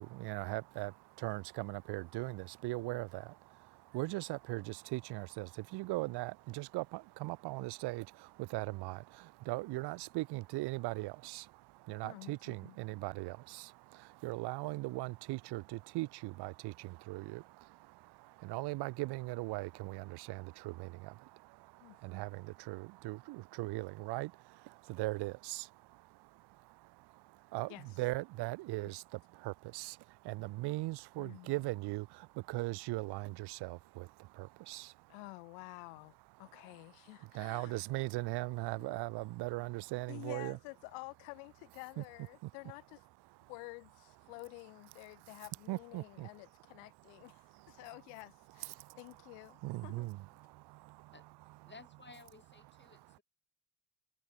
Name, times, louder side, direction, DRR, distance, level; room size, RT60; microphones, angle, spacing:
voice 1, 0.0-35.1 37.2-40.6 42.0-42.1 42.4-42.5 45.7-46.3 47.2-47.8 48.6-49.0 49.6-51.1 52.9-53.0, right 21 dB, 55° right, 0.9 m, -40 dB
voice 2, 12.0-12.8 21.8-22.0 27.7-28.0 28.8-28.9 31.2-31.7 35.1-36.1 36.4-37.8 38.8-39.0 40.1-43.0 43.5-47.4 47.7-50.4, left 40 dB or more, 75° left, 4.2 m, -51 dB
voice 3, 51.7-53.2, left 4 dB, 25° left, 7.8 m, -56 dB
hypercardioid pair, 60°, 47 cm